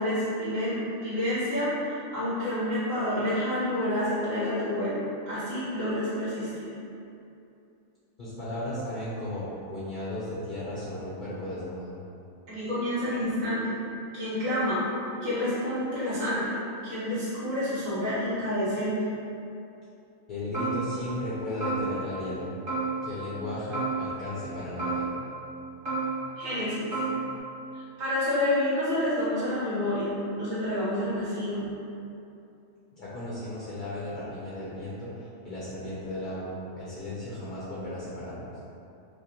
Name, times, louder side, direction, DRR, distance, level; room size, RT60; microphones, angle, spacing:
voice 1, 0.0-6.8 12.5-13.8 14.1-14.8 15.2-16.5 16.8-19.2 26.4-26.9 27.7-31.7, left 1 dB, 70° right, -12 dB, 1.9 m, -29 dB
voice 2, 8.2-12.0 20.3-22.5 23.0-25.1 33.0-38.5, left 1 dB, 45° left, -9 dB, 0.7 m, -35 dB
sound 1, 20.5-21.3 21.6-22.3 22.7-23.4 23.7-24.5 24.8-25.6 25.8-26.6 26.9-27.4, right 3 dB, 40° right, 1.3 m, -32 dB
5.2 x 2.1 x 3.0 m, 2.7 s
omnidirectional pair, 1.4 m